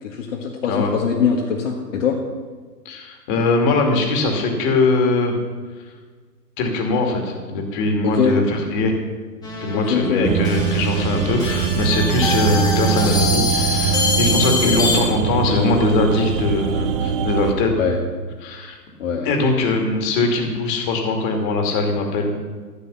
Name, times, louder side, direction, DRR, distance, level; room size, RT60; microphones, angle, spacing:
voice 1, 0.0-2.2 8.0-8.4 9.7-10.3 14.5-14.8 17.7-18.0 19.0-19.3, left 6 dB, 50° left, 0 dB, 1.7 m, -22 dB
voice 2, 2.8-5.4 6.6-9.0 9.6-17.7 18.4-18.8 19.2-22.4, left 2 dB, 30° left, 3 dB, 2.4 m, -21 dB
sound 1, 9.4-15.0, left 2 dB, 10° left, 1.7 m, -24 dB
sound 2, 10.2-17.5, right 7 dB, 35° right, 1.1 m, -22 dB
14.5 x 7.1 x 7.0 m, 1.5 s
figure-of-eight pair, 130°, 48 cm